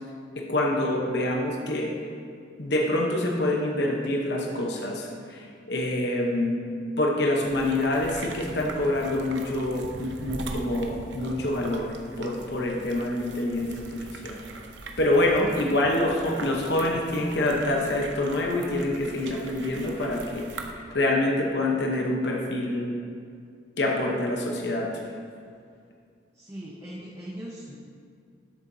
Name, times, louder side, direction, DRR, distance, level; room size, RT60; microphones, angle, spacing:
voice 1, 0.5-1.9 2.6-6.6 7.0-14.4 15.0-22.9 23.8-24.9, left 1 dB, 65° left, 0 dB, 0.9 m, -26 dB
sound 1, 7.4-20.7, right 3 dB, 75° right, 0.7 m, -42 dB
voice 2, 26.3-27.7, equal, 15° right, -6 dB, 0.9 m, -39 dB
11.5 x 7.0 x 2.7 m, 2.3 s
head